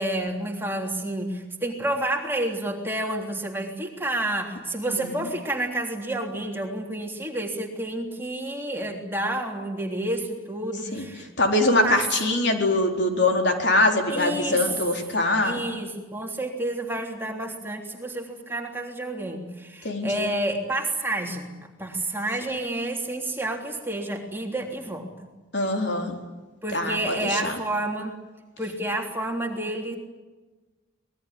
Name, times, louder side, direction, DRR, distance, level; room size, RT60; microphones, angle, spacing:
voice 1, 0.0-11.3 11.8-12.0 14.1-14.8 15.4-25.3 26.6-28.1 28.6-30.0, right 1 dB, 10° right, 1 dB, 3.4 m, -29 dB
voice 2, 11.4-15.6 19.8-20.3 25.5-26.2 26.7-27.6, left 2 dB, 60° left, 3 dB, 4.3 m, -23 dB
26.0 x 21.0 x 9.8 m, 1.2 s
head